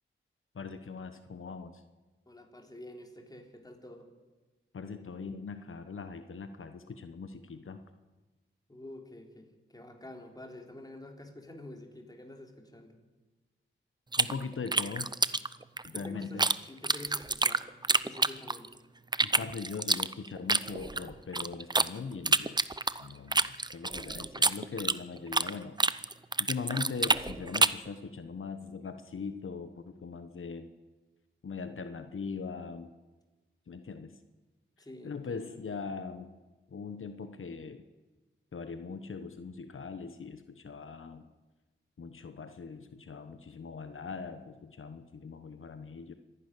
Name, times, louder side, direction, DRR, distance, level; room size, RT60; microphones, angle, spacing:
voice 1, 0.5-1.8 4.7-7.8 14.2-15.1 15.8-16.5 19.2-22.7 23.0-25.8 26.4-30.7 31.4-32.9 33.7-34.2 35.0-36.4 36.7-37.9 38.5-41.3 42.0-46.1, left 5 dB, 75° left, 9 dB, 1.1 m, -40 dB
voice 2, 2.3-4.1 8.7-13.0 15.9-18.8 34.8-35.9, left 1 dB, 20° left, 2 dB, 3.6 m, -48 dB
sound 1, 14.1-16.6 16.8-18.7 19.1-21.9 22.3-25.5 25.8-27.9, right 3 dB, 20° right, 0.6 m, -27 dB
25.5 x 11.5 x 9.9 m, 1.2 s
wide cardioid pair, 90°, 21 cm